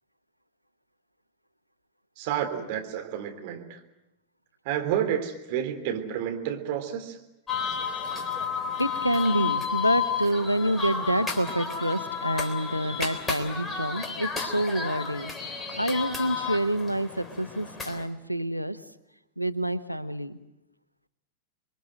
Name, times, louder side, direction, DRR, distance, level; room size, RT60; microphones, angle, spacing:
voice 1, 2.2-3.8 4.6-7.2, right 9 dB, 50° right, 4 dB, 3.6 m, -30 dB
sound 1, 7.5-18.0, left 6 dB, 15° left, 3.5 m, -32 dB
voice 2, 8.8-18.8 19.4-20.4, right 1 dB, 90° left, 14 dB, 1.1 m, -28 dB
28.0 x 22.5 x 7.8 m, 0.90 s
figure-of-eight pair, 90°, 0 cm